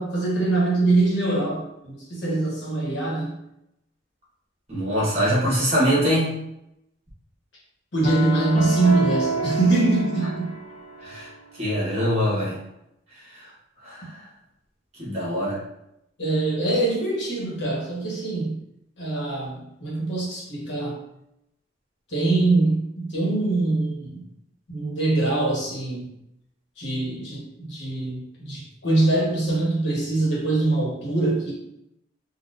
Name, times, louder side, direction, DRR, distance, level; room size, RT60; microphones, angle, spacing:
voice 1, 0.0-3.4 7.9-10.5 16.2-18.6 19.0-21.0 22.1-24.2 24.7-26.1 26.8-31.5, right 2 dB, 65° left, -5 dB, 1.2 m, -23 dB
voice 2, 4.7-6.3 11.0-11.3 11.6-12.5 13.8-14.0 15.0-15.6, equal, 35° right, -6 dB, 1.3 m, -23 dB
sound 1, 8.0-11.3, right 2 dB, 35° left, 0.9 m, -29 dB
4.0 x 2.4 x 2.5 m, 0.82 s
head